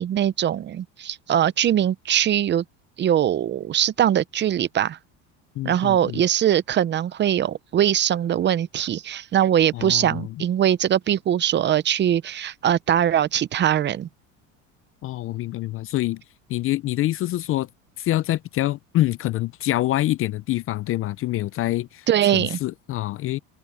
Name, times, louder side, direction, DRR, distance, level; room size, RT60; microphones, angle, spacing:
voice 1, 0.0-2.6 3.0-5.0 5.6-14.1 22.1-22.6, right 10 dB, 30° right, 0.7 m, -21 dB
voice 2, 5.6-6.2 9.7-10.3 15.0-16.2 16.5-17.7 18.0-22.1 22.3-23.4, left 15 dB, 40° left, 0.5 m, -26 dB
supercardioid pair, 125°, 35 cm